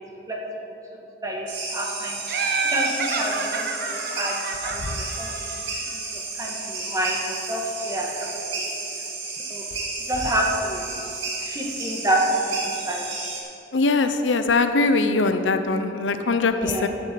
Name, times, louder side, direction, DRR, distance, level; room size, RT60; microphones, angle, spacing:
voice 1, 1.2-2.2 2.6-4.4 4.6-5.6 5.9-6.0 6.4-8.3 8.5-8.7 9.5-9.6 10.1-10.8 11.4-12.2 12.4-13.0 16.6-16.9, right 1 dB, 20° right, -1 dB, 1.6 m, -28 dB
sound 1, 1.5-13.4, right 3 dB, 85° right, 2.3 m, -32 dB
Laughter, 2.3-5.9, right 4 dB, 55° right, 0.9 m, -29 dB
voice 2, 13.7-16.9, left 3 dB, 90° left, 8 dB, 0.7 m, -21 dB
9.6 x 7.7 x 7.6 m, 2.8 s
head